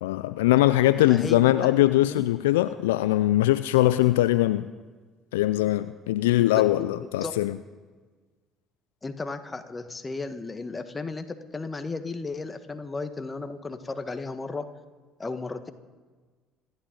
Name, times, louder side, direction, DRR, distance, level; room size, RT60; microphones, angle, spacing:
voice 1, 0.0-4.7 5.3-7.5, left 15 dB, 80° left, 14 dB, 0.4 m, -21 dB
voice 2, 1.0-1.8 2.1-2.2 6.4-7.6 9.0-14.6 15.2-15.7, left 3 dB, 25° left, 8 dB, 1.5 m, -35 dB
26.5 x 11.5 x 3.9 m, 1.4 s
hypercardioid pair, 55°, 0 cm